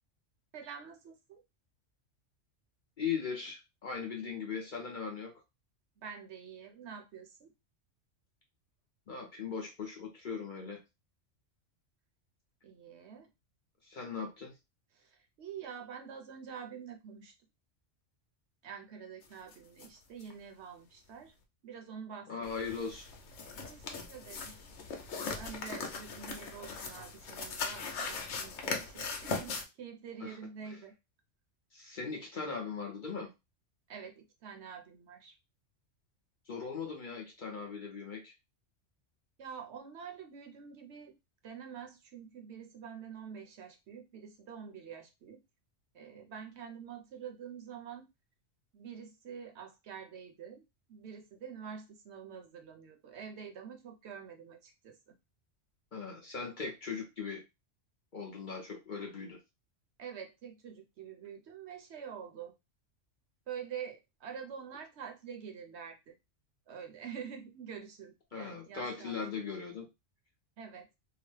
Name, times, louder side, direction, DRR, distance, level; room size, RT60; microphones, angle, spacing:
voice 1, 0.5-1.4 6.0-7.5 12.6-13.3 14.9-17.3 18.6-21.3 21.6-22.5 23.6-24.6 24.9-30.9 33.9-35.3 39.4-41.2 41.4-45.4 45.9-48.1 48.7-50.6 50.9-55.1 60.0-62.5 63.5-66.1 66.7-69.2 70.6-70.9, right 7 dB, 65° right, 4 dB, 0.9 m, -47 dB
voice 2, 3.0-5.3 9.1-10.8 13.8-14.5 22.3-23.1 30.2-30.4 30.7-30.8 31.7-33.3 36.5-38.3 55.9-57.4 58.1-59.4 68.3-69.9, left 5 dB, 50° left, 0 dB, 0.7 m, -39 dB
sound 1, 19.5-19.6 19.8-19.9 20.2-20.3 22.4-29.6, left 4 dB, 70° left, 0.9 m, -39 dB
2.9 x 2.0 x 3.1 m, 0.23 s
omnidirectional pair, 1.3 m